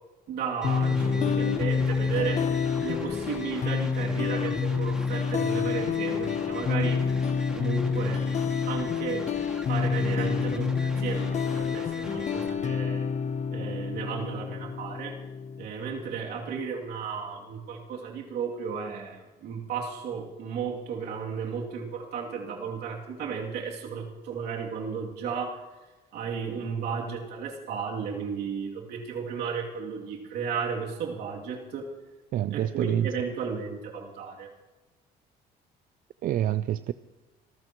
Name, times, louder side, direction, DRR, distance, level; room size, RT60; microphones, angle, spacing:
voice 1, 0.3-2.5 2.8-7.0 7.6-8.3 8.7-9.3 9.7-13.0 13.5-15.2 15.6-25.6 26.1-31.9 32.5-34.5, right 6 dB, 75° right, -1 dB, 2.8 m, -34 dB
sound 1, 0.6-15.7, left 6 dB, 45° left, 0.9 m, -28 dB
sound 2, 0.6-12.5, equal, 5° right, 2.2 m, -43 dB
voice 2, 32.3-33.1 36.2-36.9, right 11 dB, 55° right, 14 dB, 0.4 m, -27 dB
26.0 x 14.0 x 3.1 m, 1.2 s
cardioid pair, 110°, 17 cm